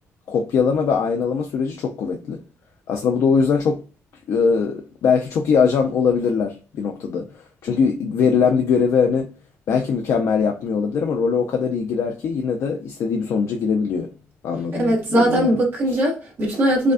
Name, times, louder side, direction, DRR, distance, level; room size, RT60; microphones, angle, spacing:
voice 1, 0.3-2.4 2.9-3.8 4.3-9.3 9.7-14.1 14.4-15.5, left 6 dB, 65° left, 0.6 m, -21 dB
voice 2, 14.7-16.9, equal, 45° right, 1.6 m, -20 dB
5.0 x 2.3 x 2.4 m
cardioid pair, 120°, 5 cm